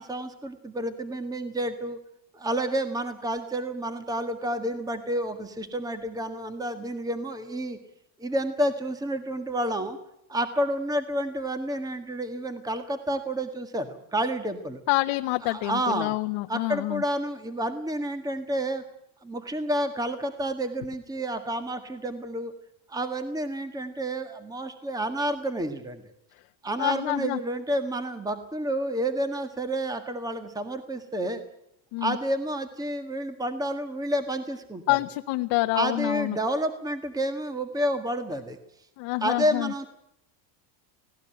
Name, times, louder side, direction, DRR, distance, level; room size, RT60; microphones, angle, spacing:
voice 1, 0.0-2.0 2.3-7.8 8.2-10.0 10.3-14.8 15.4-16.2 16.5-18.8 19.2-22.5 22.9-26.0 26.6-31.4 32.0-35.0 35.7-38.6 39.2-39.9, right 1 dB, 5° right, 9 dB, 1.6 m, -30 dB
voice 2, 14.9-17.0 26.8-27.4 31.9-32.2 34.9-36.4 39.0-39.7, left 21 dB, 60° left, 5 dB, 1.1 m, -27 dB
18.5 x 18.0 x 9.0 m, 0.78 s
supercardioid pair, 135°, 50 cm